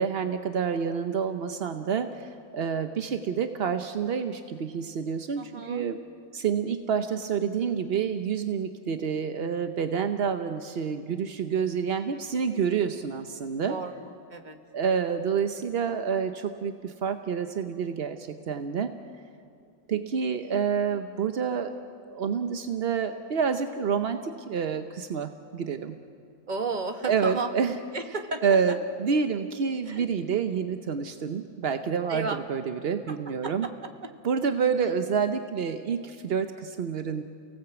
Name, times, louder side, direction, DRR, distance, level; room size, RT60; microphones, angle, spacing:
voice 1, 0.0-6.0 6.3-13.8 14.7-18.9 19.9-21.8 22.1-26.0 27.1-27.7 28.4-33.7 34.2-37.2, right 6 dB, 55° right, 8 dB, 0.6 m, -28 dB
voice 2, 5.4-5.9 13.7-14.6 26.5-27.5 27.9-28.8 29.9-30.1 32.1-32.4 33.1-33.2 33.4-33.7, right 3 dB, 25° right, 6 dB, 1.3 m, -33 dB
30.0 x 17.5 x 8.1 m, 2.5 s
omnidirectional pair, 2.0 m